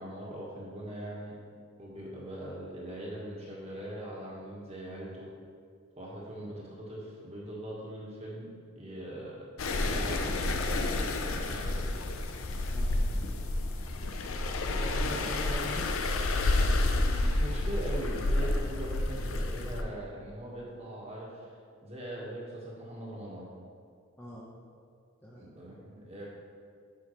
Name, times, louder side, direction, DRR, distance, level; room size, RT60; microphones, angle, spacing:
voice 1, 0.0-1.3 1.8-5.3 6.0-8.5 8.7-9.4 9.7-11.0 11.5-11.9 16.9-23.5 25.4-26.3, right 1 dB, 30° right, -4 dB, 1.6 m, -41 dB
sound 1, 9.6-19.8, left 2 dB, 75° left, 0.6 m, -30 dB
voice 2, 12.7-13.0 14.7-15.9 24.2-24.5 25.2-25.5, equal, 10° left, -5 dB, 0.8 m, -41 dB
11.0 x 5.7 x 3.2 m, 2.2 s
head